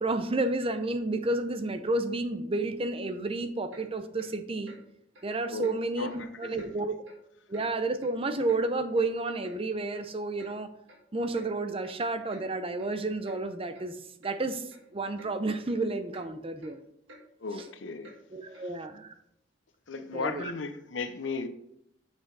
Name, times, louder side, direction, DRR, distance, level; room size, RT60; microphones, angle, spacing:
voice 1, 0.0-4.7 5.2-7.0 7.5-10.7 11.1-14.0 14.2-14.7 14.9-16.8 17.5-17.6 18.3-19.1 20.1-20.5, right 2 dB, 30° right, 0.6 m, -31 dB
Clock, 3.7-3.9 4.2-4.3 4.6-4.8 5.1-5.3 5.6-5.8 6.1-6.2 6.6-6.7 7.0-7.2 7.5-7.7 8.0-8.6 9.0-9.1 9.4-9.6 9.9-10.1 10.4-10.5 10.9-11.0 11.3-11.5 11.8-12.0 12.3-12.5 12.8-12.9 13.2-13.4 13.7-13.8 14.2-14.4 14.7-14.9 15.2-15.3 15.7-15.8 16.1-16.3 16.6-16.7 17.1-17.2 17.6-17.7 18.0-18.2 18.5-18.7, equal, 90° right, 1.6 m, -52 dB
voice 2, 5.5-6.7 17.4-18.2 18.5-18.7 19.9-21.5, left 4 dB, 80° left, 0.7 m, -36 dB
7.4 x 6.2 x 4.0 m
head